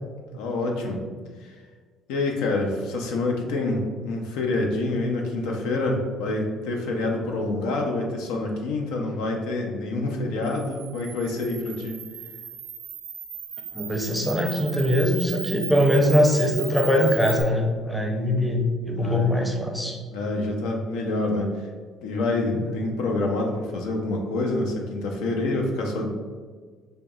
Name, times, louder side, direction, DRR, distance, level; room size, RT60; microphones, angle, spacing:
voice 1, 0.3-1.0 1.4-1.5 2.1-12.0 18.9-19.3 20.1-21.5 22.0-26.1, left 2 dB, 90° left, 1 dB, 0.5 m, -27 dB
Camera, 10.4-17.4, right 9 dB, 85° right, 0.5 m, -36 dB
voice 2, 13.7-20.0 22.6-22.8, left 1 dB, ahead, 1 dB, 0.5 m, -22 dB
5.0 x 2.0 x 2.3 m, 1.6 s
cardioid pair, 90°, 0 cm